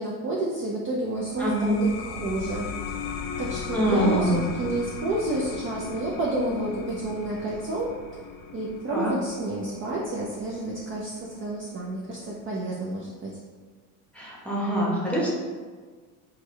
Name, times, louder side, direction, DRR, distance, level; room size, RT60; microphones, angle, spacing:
voice 1, 0.0-2.7 3.0-4.3 4.6-7.9 8.5-13.4, right 2 dB, 30° right, -4 dB, 0.4 m, -30 dB
sound 1, 1.1-12.3, left 6 dB, 50° left, 0.5 m, -38 dB
voice 2, 1.4-1.8 3.7-4.4 8.9-9.1 14.1-15.3, equal, 5° left, -5 dB, 0.9 m, -24 dB
3.4 x 2.3 x 3.1 m, 1.5 s
supercardioid pair, 100°, 43 cm